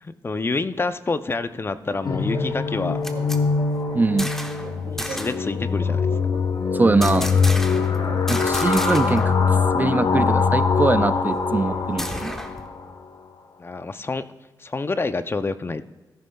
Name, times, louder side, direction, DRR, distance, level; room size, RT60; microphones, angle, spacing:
voice 1, 0.0-3.0 4.1-4.3 5.0-6.1 13.6-14.3 14.6-15.8, left 3 dB, 30° left, 11 dB, 0.5 m, -27 dB
sound 1, 1.4-2.8 3.1-3.3 3.6-5.5 5.8-7.3 7.6-9.8 10.6-12.6, right 4 dB, 65° right, 4.2 m, -42 dB
sound 2, 2.0-12.8, left 5 dB, 60° left, 1.1 m, -23 dB
sound 3, 2.7-4.7 5.0-5.5 7.0-8.0 8.3-9.3 9.6-9.7 10.1-12.7, equal, 5° left, 0.9 m, -33 dB
voice 2, 3.9-4.3 6.7-7.4 8.3-9.4 9.7-12.4, right 3 dB, 25° right, 13 dB, 0.3 m, -22 dB
16.0 x 13.5 x 2.3 m, 1.2 s
wide cardioid pair, 95°, 8 cm